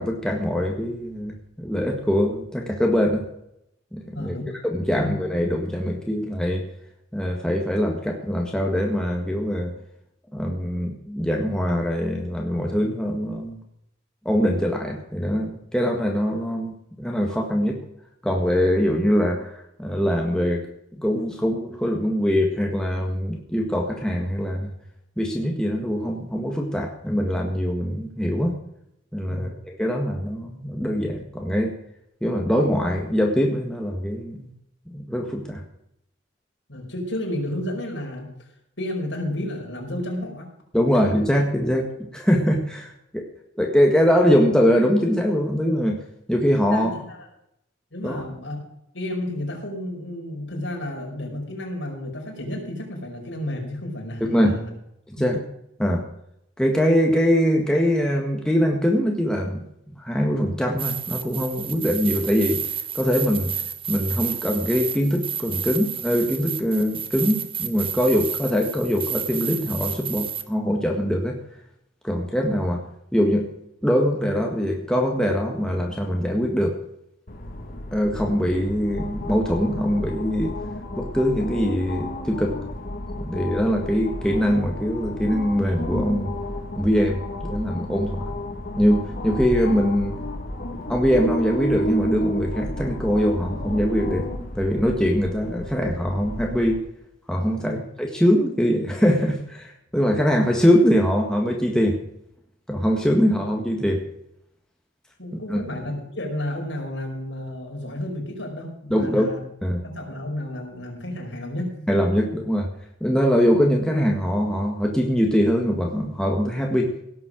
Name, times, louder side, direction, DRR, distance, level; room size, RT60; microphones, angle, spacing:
voice 1, 0.0-3.3 3.9-4.3 4.7-6.6 7.1-9.7 10.3-13.6 14.2-17.8 18.2-20.6 20.9-24.7 25.2-28.6 29.1-31.8 32.2-34.5 34.9-35.6 40.7-43.3 43.5-46.0 46.3-46.9 48.0-48.2 54.2-54.6 55.1-55.4 55.8-56.0 56.6-59.6 59.9-62.6 62.9-63.5 63.9-71.4 72.0-72.8 73.1-73.5 73.8-76.8 77.9-80.5 81.0-82.6 83.1-86.3 86.8-88.3 88.8-90.2 90.7-94.3 94.5-96.8 97.3-102.0 102.7-104.0 105.5-105.6 108.9-109.3 109.6-109.8 111.9-112.7 113.0-116.9, equal, 5° left, 0 dB, 1.7 m, -22 dB
voice 2, 4.1-4.6 4.9-5.1 29.3-29.5 36.7-38.5 38.8-40.5 46.7-47.3 47.9-48.6 48.9-54.7 55.1-55.4 97.6-97.8 105.2-109.4 109.8-111.9, left 1 dB, 75° left, 0 dB, 5.3 m, -32 dB
sound 1, 60.8-70.4, right 9 dB, 30° right, 1.0 m, -31 dB
Musical Road, 77.3-96.8, left 1 dB, 50° left, 1.8 m, -32 dB
17.5 x 7.7 x 6.2 m, 0.77 s
head